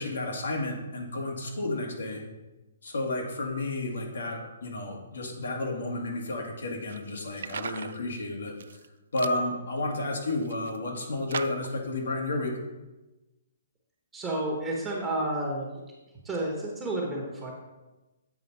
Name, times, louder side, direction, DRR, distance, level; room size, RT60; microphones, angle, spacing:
voice 1, 0.0-2.2 2.8-8.6 9.1-12.6, left 2 dB, 85° left, 1 dB, 1.8 m, -32 dB
sound 1, 6.9-8.0 8.5-8.9 9.2-9.4 10.0-10.8 11.3-11.8, right 6 dB, 65° right, 0.3 m, -39 dB
voice 2, 14.1-15.8 16.2-17.5, right 1 dB, 10° right, -3 dB, 1.1 m, -31 dB
8.2 x 3.9 x 5.5 m, 1.1 s
hypercardioid pair, 165°, 0 cm